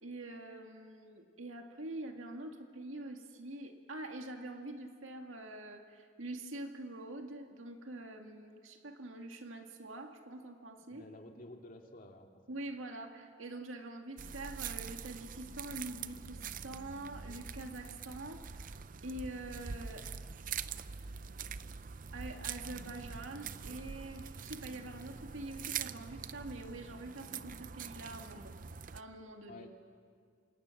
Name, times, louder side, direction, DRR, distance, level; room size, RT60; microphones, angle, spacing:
voice 1, 0.0-11.1 12.5-18.8 19.0-20.1 22.1-28.5 28.9-29.7, right 2 dB, 85° right, 4 dB, 2.1 m, -45 dB
voice 2, 10.9-12.3 28.3-28.4 29.5-29.7, left 2 dB, 45° left, 2 dB, 2.5 m, -51 dB
sound 1, 14.2-29.0, right 6 dB, 45° right, 0.6 m, -44 dB
27.5 x 26.5 x 7.2 m, 2.1 s
head